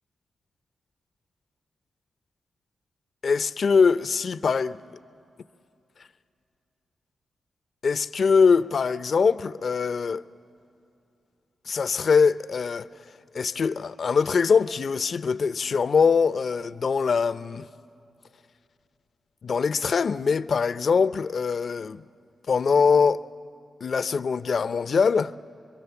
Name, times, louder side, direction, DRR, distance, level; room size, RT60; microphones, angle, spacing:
voice 1, 3.2-4.8 7.8-10.2 11.7-12.9 13.3-17.7 19.4-22.0 22.5-23.2 23.8-25.3, left 5 dB, 60° left, 0.5 m, -22 dB
26.0 x 22.5 x 7.0 m
cardioid pair, 55°, 0 cm